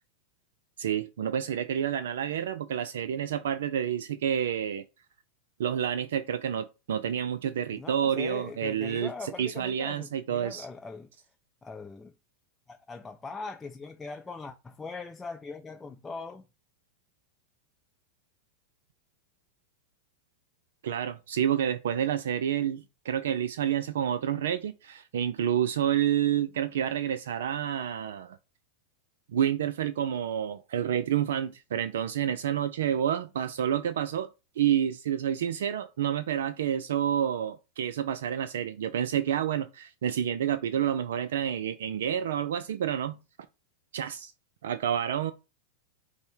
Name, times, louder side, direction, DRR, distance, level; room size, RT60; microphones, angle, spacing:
voice 1, 0.8-4.8 5.6-10.7 20.8-28.4 29.3-34.3 34.6-43.2 43.9-44.3 44.6-45.3, right 9 dB, 75° right, 0.3 m, -29 dB
voice 2, 7.7-11.1 11.6-12.1 12.7-16.5, left 4 dB, 15° left, 0.4 m, -41 dB
5.4 x 2.1 x 4.5 m
hypercardioid pair, 100°, 0 cm